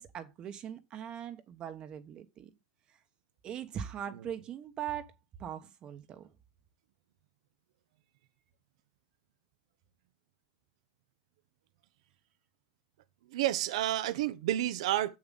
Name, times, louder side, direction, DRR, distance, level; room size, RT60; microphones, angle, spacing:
voice 1, 0.0-2.5 2.9-3.0 3.4-5.1 5.4-6.3, right 9 dB, 25° right, 1.2 m, -41 dB
voice 2, 13.3-15.2, right 13 dB, 65° right, 0.8 m, -30 dB
7.9 x 7.2 x 3.9 m
supercardioid pair, 150°, 3 cm